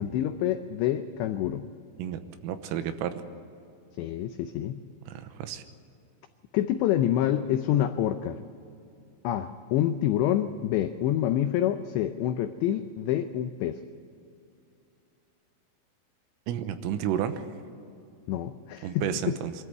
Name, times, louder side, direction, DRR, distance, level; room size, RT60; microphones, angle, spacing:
voice 1, 0.0-1.7 4.0-4.8 6.5-8.4 9.2-13.8 18.3-19.1, left 11 dB, 85° left, 8 dB, 2.5 m, -27 dB
voice 2, 2.0-3.2 5.1-5.6 16.5-17.5 18.8-19.5, right 10 dB, 90° right, 9 dB, 3.6 m, -31 dB
24.0 x 13.5 x 9.4 m, 2.6 s
omnidirectional pair, 5.9 m